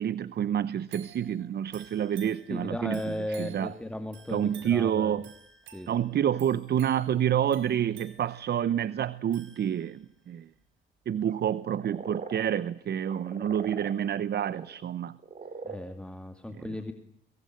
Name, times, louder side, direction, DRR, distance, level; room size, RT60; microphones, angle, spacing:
voice 1, 0.0-3.7 4.3-5.3 5.9-10.5 11.1-15.1 16.5-16.6, right 9 dB, 55° right, 0.9 m, -28 dB
sound 1, 0.9-10.1 10.6-10.7, right 8 dB, 75° right, 6.0 m, -53 dB
voice 2, 2.5-5.2 5.7-5.9 15.6-16.9, left 1 dB, 5° left, 2.3 m, -36 dB
sound 2, 9.0-9.1 11.3-12.6 13.0-14.7 15.2-15.8, right 5 dB, 40° right, 4.5 m, -41 dB
23.5 x 19.0 x 9.4 m
cardioid pair, 90°, 20 cm